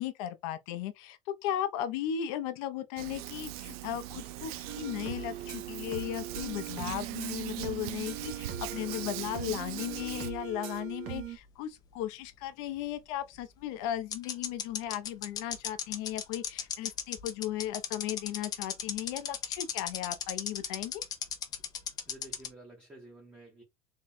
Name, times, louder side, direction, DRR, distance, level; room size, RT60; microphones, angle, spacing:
voice 1, 0.0-21.0, left 11 dB, 60° left, 0.6 m, -36 dB
Hands, 3.0-10.3, right 15 dB, 80° right, 0.4 m, -41 dB
sound 1, 4.7-11.4, right 9 dB, 40° right, 0.8 m, -40 dB
sound 2, 10.0-11.2 11.4-11.5 13.3-13.4 14.1-22.5, left 8 dB, 20° left, 0.4 m, -35 dB
voice 2, 22.0-23.6, right 2 dB, 10° right, 0.9 m, -51 dB
3.6 x 2.2 x 4.2 m
cardioid pair, 180°, 19 cm